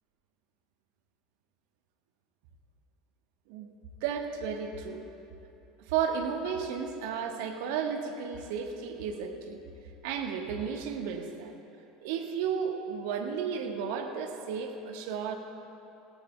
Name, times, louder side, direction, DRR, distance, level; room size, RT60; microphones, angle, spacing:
voice 1, 4.0-5.0 5.9-9.6 10.0-11.5 12.0-15.4, right 7 dB, 60° right, 3 dB, 1.4 m, -33 dB
23.5 x 17.0 x 2.3 m, 2.8 s
figure-of-eight pair, 75°, 0 cm